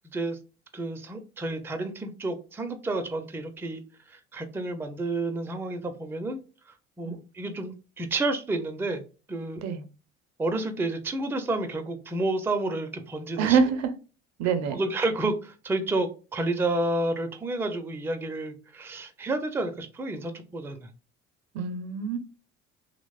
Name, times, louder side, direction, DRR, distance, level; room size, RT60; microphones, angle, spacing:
voice 1, 0.7-6.4 6.7-9.0 9.3-9.6 10.4-13.6 14.7-20.9, right 2 dB, 5° right, 0.4 m, -30 dB
voice 2, 13.4-13.8 14.4-14.8 21.5-22.2, right 6 dB, 55° right, 0.5 m, -25 dB
2.9 x 2.0 x 2.3 m
hypercardioid pair, 60°, 32 cm